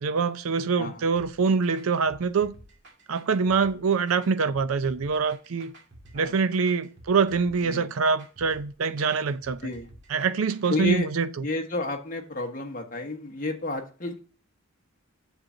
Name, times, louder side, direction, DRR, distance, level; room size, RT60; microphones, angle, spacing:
voice 1, 0.0-2.5 3.1-5.7 6.1-9.6 10.1-11.5, right 5 dB, 85° right, 0.5 m, -25 dB
sound 1, 1.2-11.0, right 1 dB, 55° right, 2.0 m, -51 dB
voice 2, 10.7-11.1 11.4-14.2, left 2 dB, 40° left, 1.3 m, -31 dB
7.9 x 7.4 x 2.7 m
head